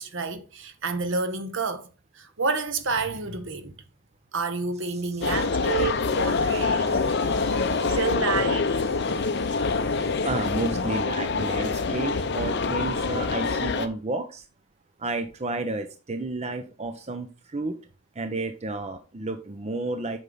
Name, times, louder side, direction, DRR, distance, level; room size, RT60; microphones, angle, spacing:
voice 1, 0.0-1.9 2.1-3.7 4.3-7.1 7.9-8.7, right 4 dB, 65° right, 1.0 m, -29 dB
sound 1, 5.2-13.9, left 4 dB, 55° left, 0.7 m, -25 dB
voice 2, 6.9-8.0 9.0-14.4 15.0-17.8 18.2-20.2, right 2 dB, 30° right, 0.6 m, -32 dB
8.2 x 5.5 x 3.9 m
head